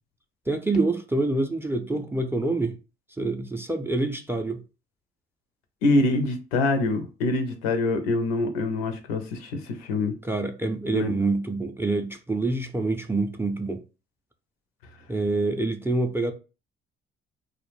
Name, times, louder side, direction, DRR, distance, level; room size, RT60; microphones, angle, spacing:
voice 1, 0.5-2.8 3.2-4.6 10.2-13.8 15.1-16.3, right 2 dB, 10° right, 0.4 m, -26 dB
voice 2, 5.8-10.1 10.9-11.1, left 2 dB, 90° left, 0.5 m, -25 dB
2.3 x 2.0 x 3.0 m
hypercardioid pair, 45°, 29 cm